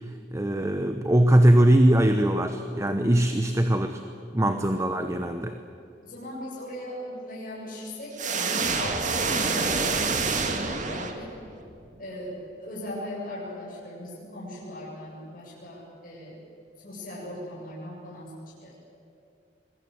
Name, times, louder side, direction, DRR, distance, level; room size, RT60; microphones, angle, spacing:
voice 1, 0.3-4.0 4.3-5.5, right 1 dB, 15° right, 7 dB, 1.0 m, -21 dB
voice 2, 6.0-11.3 12.0-12.3 12.6-16.4 16.8-18.3 18.6-18.7, left 1 dB, 50° left, -5 dB, 7.6 m, -38 dB
sound 1, 8.2-11.5, right 4 dB, 45° right, 2.1 m, -27 dB
25.5 x 21.5 x 7.9 m, 2.5 s
head